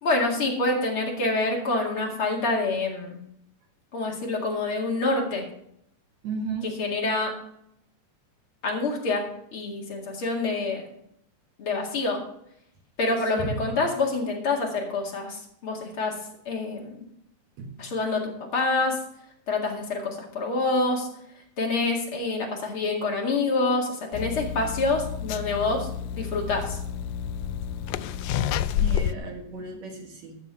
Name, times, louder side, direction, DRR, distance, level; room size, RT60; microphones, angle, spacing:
voice 1, 0.0-3.2 3.9-5.5 6.6-7.4 8.6-10.8 11.6-12.2 13.0-16.2 16.5-17.0 17.8-19.0 19.5-21.1 21.6-26.8, left 3 dB, 45° left, 0 dB, 2.8 m, -27 dB
voice 2, 6.2-6.7 13.4-13.7 17.6-17.7 28.8-30.4, right 3 dB, 65° right, 2 dB, 2.7 m, -34 dB
sound 1, 24.1-29.1, left 9 dB, 85° left, 1.5 m, -29 dB
13.0 x 7.1 x 5.6 m, 0.74 s
omnidirectional pair, 3.5 m